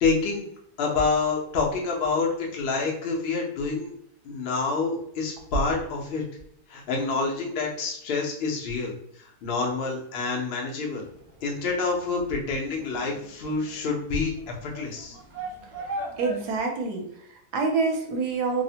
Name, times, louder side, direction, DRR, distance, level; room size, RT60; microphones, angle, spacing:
voice 1, 0.0-0.5 0.8-3.9 4.2-6.2 6.7-11.0 11.4-15.2, left 4 dB, 70° left, -1 dB, 0.5 m, -27 dB
sound 1, 11.0-16.6, right 1 dB, 55° right, 0.9 m, -39 dB
voice 2, 16.2-18.6, right 4 dB, 75° right, 2 dB, 1.1 m, -27 dB
2.9 x 2.1 x 2.7 m, 0.69 s
omnidirectional pair, 1.9 m